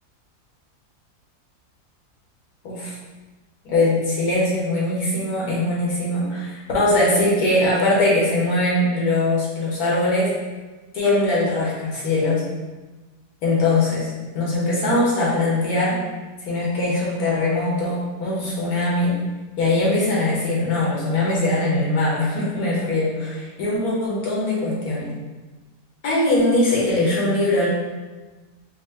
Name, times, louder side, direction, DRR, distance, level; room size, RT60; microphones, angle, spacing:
voice 1, 2.6-3.0 3.6-10.3 10.9-12.4 13.4-16.0 16.4-19.2 19.6-25.1 26.0-27.7, left 2 dB, 70° left, -5 dB, 1.4 m, -21 dB
4.5 x 2.1 x 3.2 m, 1.2 s
omnidirectional pair, 1.7 m